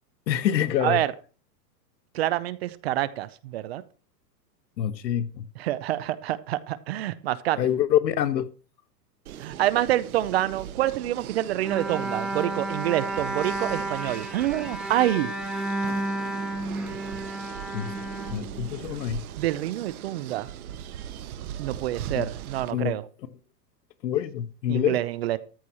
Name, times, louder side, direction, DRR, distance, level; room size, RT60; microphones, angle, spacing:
voice 1, 0.3-1.0 4.8-5.5 7.6-8.5 17.7-17.9 18.3-19.2 22.1-22.3 22.7-22.9 24.0-25.0, left 10 dB, 85° left, 1.4 m, -26 dB
voice 2, 0.8-1.1 2.1-3.8 5.6-7.6 9.4-15.3 19.4-20.5 21.6-23.0 24.7-25.4, right 14 dB, 40° right, 0.6 m, -27 dB
sound 1, 9.3-22.7, right 10 dB, 60° right, 1.3 m, -40 dB
Bowed string instrument, 11.6-19.0, right 2 dB, ahead, 1.4 m, -32 dB
13.5 x 4.6 x 6.9 m
supercardioid pair, 160°, 49 cm